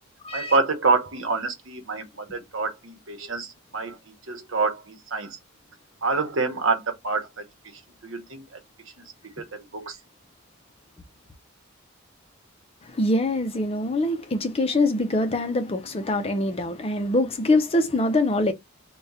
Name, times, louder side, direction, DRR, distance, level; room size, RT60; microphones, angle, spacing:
voice 1, 0.3-4.0 4.3-5.4 6.0-7.3 8.0-8.6 9.4-10.0, right 4 dB, 65° right, 1.0 m, -27 dB
voice 2, 13.0-18.5, left 2 dB, 30° left, 0.5 m, -24 dB
3.5 x 2.2 x 4.1 m
head